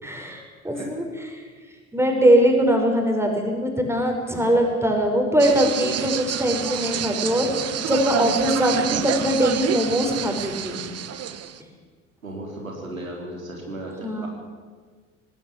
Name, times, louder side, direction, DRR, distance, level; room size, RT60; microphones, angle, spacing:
voice 1, 0.0-1.4 1.9-7.5 7.9-10.8 14.0-14.3, equal, 5° right, 2 dB, 5.8 m, -21 dB
sound 1, 5.4-11.6, right 9 dB, 40° right, 1.5 m, -28 dB
voice 2, 12.2-14.3, right 1 dB, 85° right, 0 dB, 3.9 m, -35 dB
19.0 x 17.5 x 9.0 m, 1.5 s
figure-of-eight pair, 65°, 39 cm